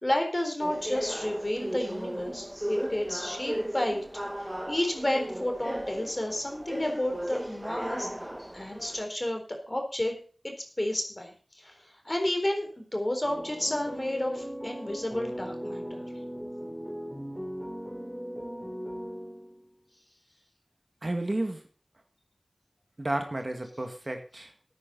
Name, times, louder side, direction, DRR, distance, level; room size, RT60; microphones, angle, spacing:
voice 1, 0.0-4.0 4.7-8.1 8.5-10.1 10.4-16.0, left 1 dB, 30° left, 4 dB, 3.9 m, -31 dB
sound 1, 0.6-9.0, equal, 15° right, 1.4 m, -36 dB
sound 2, 13.2-19.7, equal, 5° left, 3.1 m, -38 dB
voice 2, 21.0-21.6 23.0-24.5, right 1 dB, 45° right, 5 dB, 2.0 m, -32 dB
14.5 x 9.5 x 4.1 m, 0.40 s
wide cardioid pair, 55°, 0 cm